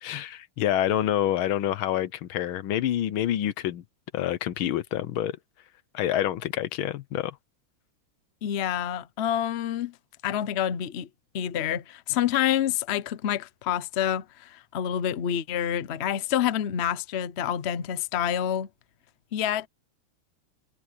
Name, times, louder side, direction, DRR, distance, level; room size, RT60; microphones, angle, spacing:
voice 1, 0.0-3.8 4.1-5.4 5.9-7.4, left 11 dB, 80° left, 1.7 m, -27 dB
voice 2, 8.4-9.9 10.2-11.1 11.3-18.7 19.3-19.7, left 10 dB, 60° left, 0.7 m, -27 dB
omnidirectional pair, 2.2 m